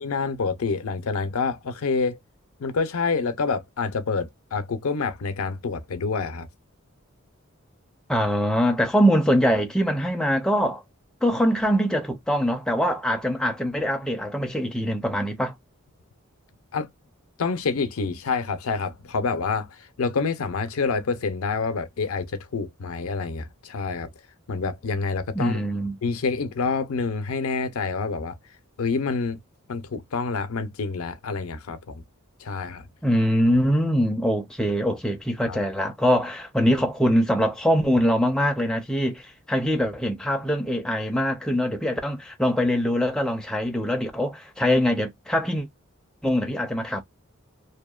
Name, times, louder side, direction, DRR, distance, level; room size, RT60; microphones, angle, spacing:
voice 1, 0.0-2.2 2.6-6.5 16.7-16.9 17.4-24.1 24.5-25.6 26.0-28.3 28.8-29.4 29.7-32.0 32.4-32.9 35.4-35.6, left 4 dB, 80° left, 0.5 m, -27 dB
voice 2, 8.1-10.8 11.2-15.5 25.3-26.0 33.0-45.7 46.2-47.0, equal, 5° left, 0.4 m, -23 dB
2.7 x 2.1 x 2.2 m
head